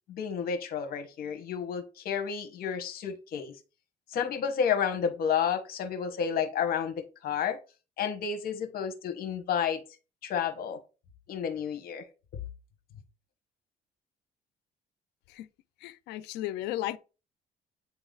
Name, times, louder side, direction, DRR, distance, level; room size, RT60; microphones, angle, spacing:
voice 1, 0.1-3.5 4.1-7.6 8.0-9.8 10.2-10.8 11.3-12.0, left 7 dB, 60° left, 1.3 m, -31 dB
voice 2, 15.8-17.0, left 14 dB, 85° left, 0.5 m, -35 dB
8.8 x 3.0 x 3.9 m
cardioid pair, 110°, 17 cm